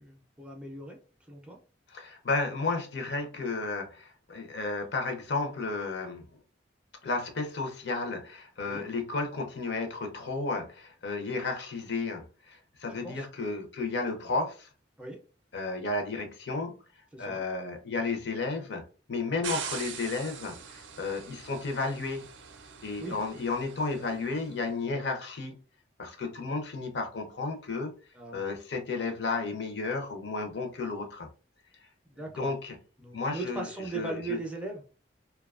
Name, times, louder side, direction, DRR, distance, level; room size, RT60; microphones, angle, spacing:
voice 1, 0.0-1.6 8.7-8.8 13.0-13.2 15.0-15.2 17.1-17.4 23.0-23.2 28.1-28.4 32.1-32.5 33.0-34.8, right 3 dB, 5° right, 0.4 m, -39 dB
voice 2, 1.9-6.3 7.0-14.7 15.5-16.7 17.2-22.2 22.8-25.5 26.0-27.9 28.3-31.3 32.4-32.7 33.1-33.7 33.9-34.4, left 3 dB, 65° left, 0.6 m, -33 dB
sound 1, 19.4-24.6, right 8 dB, 75° right, 0.4 m, -42 dB
2.6 x 2.2 x 2.3 m
head